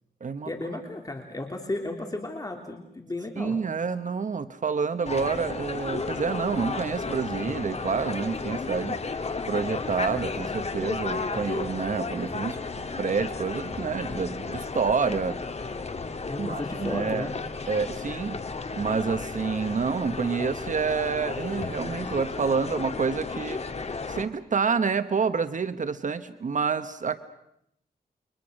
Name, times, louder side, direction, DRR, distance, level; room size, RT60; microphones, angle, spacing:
voice 1, 0.4-3.6 16.3-17.3, left 2 dB, 20° left, 3 dB, 2.9 m, -34 dB
voice 2, 3.4-9.0 9.5-12.6 13.0-15.4 16.4-17.3 17.7-18.4 18.7-23.6 24.1-27.2, right 5 dB, 55° right, 11 dB, 1.1 m, -28 dB
sound 1, 5.0-24.2, left 4 dB, 40° left, 1.9 m, -33 dB
29.5 x 24.0 x 6.4 m, 0.77 s
wide cardioid pair, 90°, 16 cm